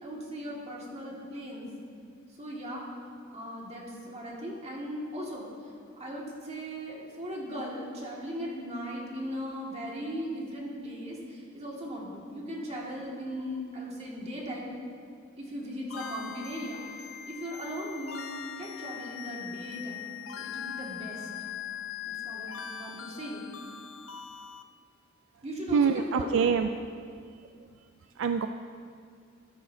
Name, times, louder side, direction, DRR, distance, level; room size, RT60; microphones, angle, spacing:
voice 1, 0.0-1.7 2.4-2.8 3.3-5.4 6.0-14.7 15.4-16.8 17.3-21.3 22.1-23.4 25.4-26.5, equal, 30° right, -3 dB, 2.0 m, -38 dB
sound 1, 15.9-24.6, left 9 dB, 80° left, 0.5 m, -41 dB
voice 2, 25.7-26.7 28.2-28.5, right 6 dB, 65° right, 7 dB, 0.3 m, -25 dB
13.0 x 12.5 x 2.7 m, 2.2 s
head